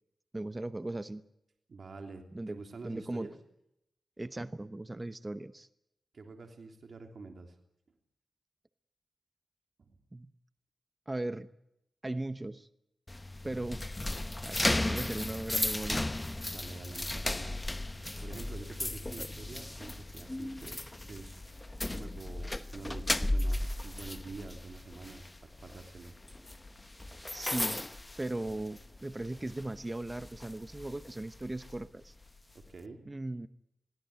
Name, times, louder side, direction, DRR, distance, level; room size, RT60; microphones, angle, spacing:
voice 1, 0.3-1.2 2.3-2.6 2.8-3.3 4.2-5.7 10.1-10.3 11.1-11.5 12.0-12.7 13.4-14.0 14.4-16.1 19.2-19.3 27.3-27.8 28.2-32.1 33.1-33.5, right 2 dB, 25° right, 13 dB, 0.9 m, -38 dB
voice 2, 1.7-3.3 6.1-7.5 9.8-10.0 16.5-17.6 18.2-20.8 21.1-21.4 21.9-26.1 32.5-33.1, right 3 dB, 65° right, 4 dB, 3.2 m, -47 dB
sound 1, 13.1-29.0 29.3-29.6 30.1-31.8, left 1 dB, 20° left, 1.0 m, -35 dB
sound 2, 17.2-32.8, left 3 dB, 55° left, 6.4 m, -58 dB
22.0 x 16.5 x 9.5 m, 0.82 s
cardioid pair, 65°, 0 cm